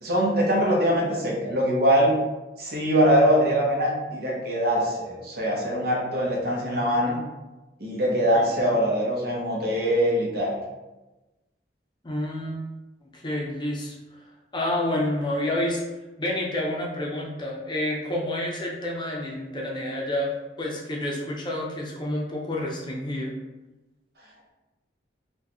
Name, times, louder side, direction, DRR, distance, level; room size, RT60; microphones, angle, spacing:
voice 1, 0.0-2.2 2.6-7.2 7.8-10.6, equal, 60° right, -3 dB, 1.0 m, -23 dB
voice 2, 12.0-12.6 13.1-14.0 14.5-15.8 16.2-20.3 20.6-23.3, left 1 dB, 25° left, -2 dB, 0.5 m, -29 dB
4.6 x 2.2 x 2.9 m, 1.1 s
head